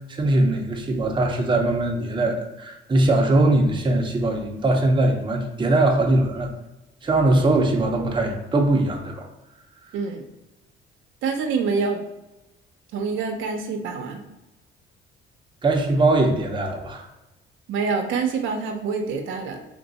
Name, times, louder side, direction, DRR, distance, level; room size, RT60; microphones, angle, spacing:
voice 1, 0.1-6.5 7.0-9.3 15.6-17.1, right 2 dB, 25° right, 2 dB, 0.7 m, -21 dB
voice 2, 9.9-10.2 11.2-12.0 12.9-14.2 17.7-19.7, right 5 dB, 75° right, 3 dB, 0.6 m, -26 dB
3.7 x 2.6 x 4.0 m, 0.99 s
cardioid pair, 90°, 20 cm